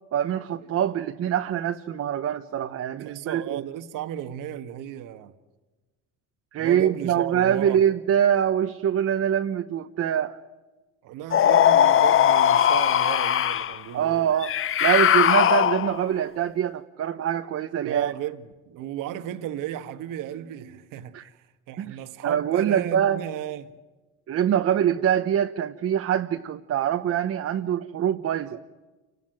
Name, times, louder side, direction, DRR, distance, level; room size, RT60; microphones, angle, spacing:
voice 1, 0.1-3.6 6.5-10.4 13.9-14.5 14.8-18.1 21.1-21.3 21.8-23.2 24.3-28.6, right 9 dB, 50° right, 1.0 m, -24 dB
voice 2, 3.0-5.3 6.6-7.8 11.0-14.3 17.8-23.7, right 11 dB, 75° right, 1.6 m, -35 dB
sound 1, 11.3-13.8 14.4-16.1, left 10 dB, 40° left, 0.7 m, -19 dB
28.5 x 19.0 x 9.0 m
cardioid pair, 105°, 32 cm